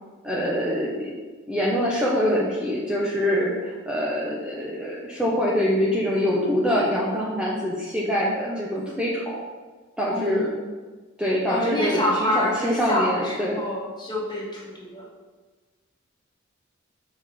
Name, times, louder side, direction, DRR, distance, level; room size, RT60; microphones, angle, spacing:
voice 1, 0.2-1.2 1.5-9.4 10.0-10.5 11.2-13.6, equal, 5° right, -6 dB, 1.1 m, -24 dB
voice 2, 10.1-10.6 11.5-15.0, left 1 dB, 20° left, -4 dB, 2.0 m, -27 dB
7.3 x 5.6 x 5.2 m, 1.3 s
head